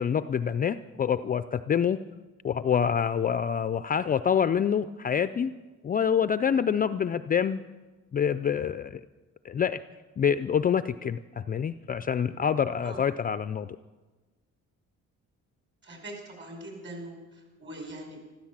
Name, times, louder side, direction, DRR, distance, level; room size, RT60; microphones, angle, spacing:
voice 1, 0.0-2.0 2.4-5.5 5.8-7.6 8.1-9.0 9.4-9.8 10.2-13.8, left 8 dB, 30° left, 13 dB, 0.4 m, -26 dB
voice 2, 15.8-18.2, right 1 dB, 40° right, 2 dB, 5.4 m, -42 dB
14.5 x 13.5 x 7.4 m, 1.3 s
cardioid pair, 110°, 30 cm